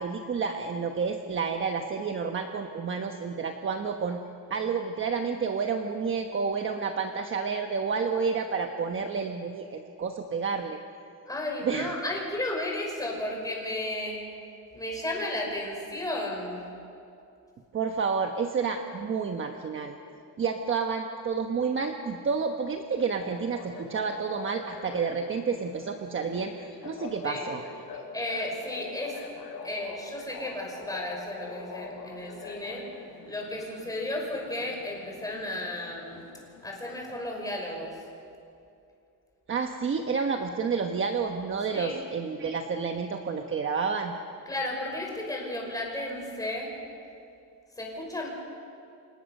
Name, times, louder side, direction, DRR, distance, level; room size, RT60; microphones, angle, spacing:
voice 1, 0.0-4.2 4.5-10.8 11.6-11.9 17.7-20.0 20.4-26.5 26.8-27.6 27.9-28.0 39.5-44.1, right 5 dB, 35° right, 4 dB, 1.2 m, -30 dB
voice 2, 11.3-14.2 14.7-16.7 27.2-27.4 28.1-29.2 29.6-32.8 33.2-36.2 36.6-38.0 41.7-41.9 44.5-46.7 47.8-48.3, left 1 dB, 10° left, 0 dB, 5.4 m, -33 dB
sound 1, 23.2-37.5, left 4 dB, 90° left, 7.4 m, -44 dB
29.5 x 26.5 x 6.6 m, 2.6 s
cardioid pair, 175°, 36 cm